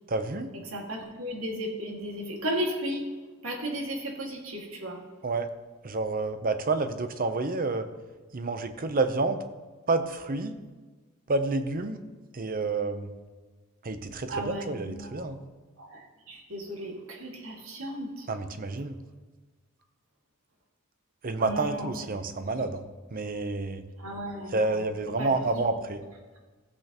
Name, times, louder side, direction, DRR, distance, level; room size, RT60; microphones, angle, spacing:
voice 1, 0.1-0.5 5.2-5.5 5.8-7.9 8.3-9.4 9.9-10.6 11.3-12.0 12.3-13.1 13.8-15.4 18.3-18.9 21.2-22.9 23.1-23.8 24.5-26.0, right 3 dB, 45° right, 9 dB, 0.8 m, -29 dB
voice 2, 0.7-3.1 3.4-5.0 14.3-15.2 15.8-18.3 21.4-21.9 22.5-22.7 24.0-24.8 25.2-25.7, equal, 75° right, 0 dB, 2.1 m, -35 dB
15.5 x 8.0 x 3.0 m, 1.3 s
head